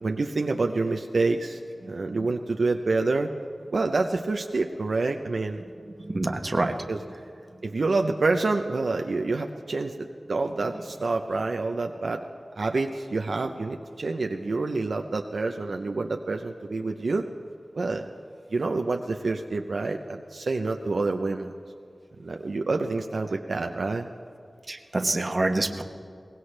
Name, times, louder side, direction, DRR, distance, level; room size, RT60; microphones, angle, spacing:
voice 1, 0.0-1.6 1.9-3.3 3.7-5.6 6.9-7.0 7.6-12.2 12.6-17.3 17.7-18.2 18.5-21.5 22.2-24.1, right 3 dB, 75° right, 4 dB, 0.6 m, -27 dB
voice 2, 6.0-6.8 24.7-25.8, right 2 dB, 40° right, 6 dB, 1.1 m, -26 dB
22.5 x 18.5 x 3.3 m, 2.4 s
wide cardioid pair, 75°, 0 cm